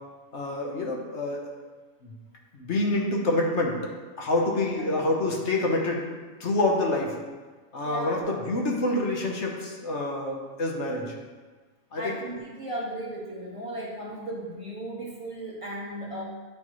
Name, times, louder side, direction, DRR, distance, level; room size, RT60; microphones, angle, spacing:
voice 1, 0.3-1.4 2.0-2.1 2.5-3.8 4.2-6.0 6.4-7.1 7.7-11.1 11.9-12.2, left 2 dB, 65° left, -1 dB, 1.2 m, -27 dB
voice 2, 7.8-8.2 11.9-16.2, right 1 dB, 30° right, -5 dB, 1.1 m, -36 dB
10.5 x 4.3 x 3.1 m, 1.4 s
omnidirectional pair, 1.3 m